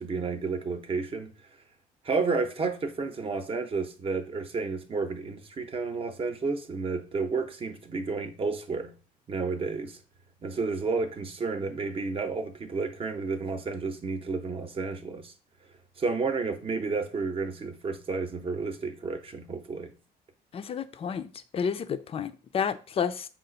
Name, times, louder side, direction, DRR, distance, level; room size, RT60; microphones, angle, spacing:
voice 1, 0.0-1.3 2.0-8.9 9.3-10.0 10.4-15.3 16.0-19.9, right 4 dB, 35° right, 0.7 m, -31 dB
voice 2, 20.5-23.3, left 7 dB, 35° left, 0.4 m, -31 dB
5.5 x 2.4 x 3.9 m
cardioid pair, 110°, 17 cm